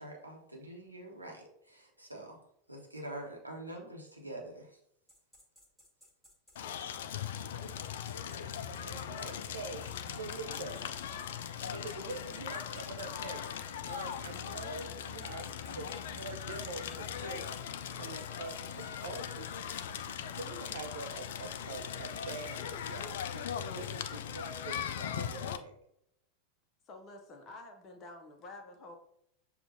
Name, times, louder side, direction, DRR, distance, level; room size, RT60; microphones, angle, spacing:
voice 1, 0.0-2.4 2.7-4.7, right 1 dB, 90° right, -1 dB, 0.9 m, -45 dB
sound 1, 5.1-13.1 13.4-13.6 13.9-23.9, left 1 dB, ahead, 1.5 m, -61 dB
Crackle, 6.6-25.6, left 8 dB, 60° left, 0.3 m, -40 dB
voice 2, 8.7-10.8 11.6-13.4 13.9-17.5 17.9-19.5 19.9-23.5 23.7-25.8, right 3 dB, 65° right, 6 dB, 0.4 m, -45 dB
voice 3, 26.9-29.0, left 2 dB, 30° left, 3 dB, 0.7 m, -49 dB
6.9 x 2.4 x 2.6 m, 0.75 s
figure-of-eight pair, 85°, 0 cm